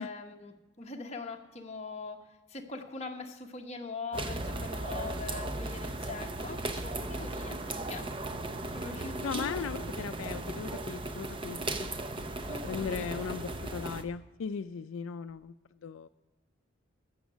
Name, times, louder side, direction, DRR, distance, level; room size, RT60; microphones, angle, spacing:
voice 1, 0.0-8.1 8.7-9.9 12.5-13.1, left 3 dB, 30° left, 2 dB, 1.1 m, -42 dB
sound 1, 4.1-14.0, right 2 dB, 25° right, 0.6 m, -37 dB
voice 2, 9.2-11.6 12.6-15.5 15.8-16.1, left 6 dB, 80° left, 11 dB, 0.4 m, -37 dB
15.5 x 6.4 x 6.1 m, 1.2 s
head